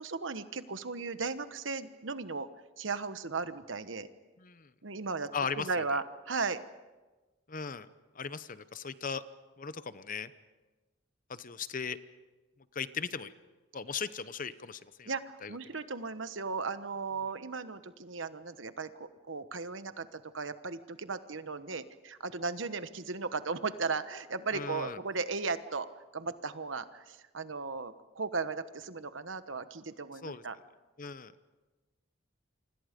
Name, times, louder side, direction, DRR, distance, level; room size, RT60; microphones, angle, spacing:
voice 1, 0.0-2.5 2.8-4.1 4.8-6.6 15.1-30.6, right 4 dB, 65° right, 11 dB, 1.2 m, -36 dB
voice 2, 4.4-4.7 5.3-5.8 7.5-7.9 8.2-9.2 9.6-10.3 11.3-12.0 12.7-13.3 13.7-15.1 15.4-15.6 24.5-25.0 30.2-30.4 31.0-31.3, left 5 dB, 40° left, 14 dB, 0.8 m, -38 dB
29.0 x 25.5 x 5.2 m, 1.2 s
head